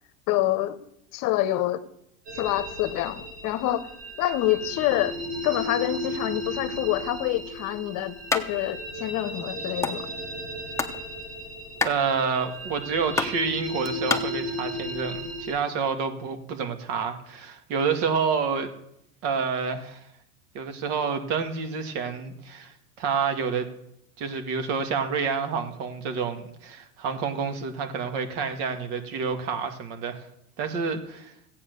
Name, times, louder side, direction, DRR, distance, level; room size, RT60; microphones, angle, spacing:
voice 1, 0.3-0.8 1.1-1.8 2.3-3.9 4.2-5.2 5.4-10.1, left 14 dB, 45° left, 12 dB, 1.1 m, -26 dB
sound 1, 2.3-15.5, equal, 85° right, 6.2 m, -35 dB
sound 2, 8.3-8.5 8.8-8.9 9.1-10.0 10.4-11.0 11.3-14.2, left 3 dB, 5° left, 0.9 m, -28 dB
voice 2, 11.8-18.7 19.2-20.1 20.5-23.7 24.2-30.3 30.6-31.3, right 5 dB, 60° right, 7 dB, 2.1 m, -28 dB
14.5 x 8.6 x 6.8 m, 0.78 s
supercardioid pair, 115°, 43 cm